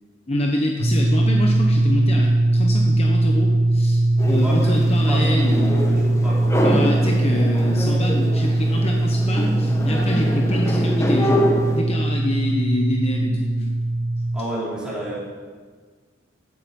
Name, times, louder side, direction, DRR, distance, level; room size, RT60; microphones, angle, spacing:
voice 1, 0.3-6.0 6.6-11.4 11.7-13.7, left 1 dB, 35° left, 0 dB, 1.1 m, -26 dB
sound 1, 0.8-14.4, right 1 dB, 50° right, 1.7 m, -20 dB
sound 2, 4.2-11.8, equal, 15° left, 1.3 m, -25 dB
voice 2, 4.4-6.6 14.3-15.2, right 1 dB, 5° right, -7 dB, 4.1 m, -30 dB
14.5 x 8.8 x 5.4 m, 1.5 s
head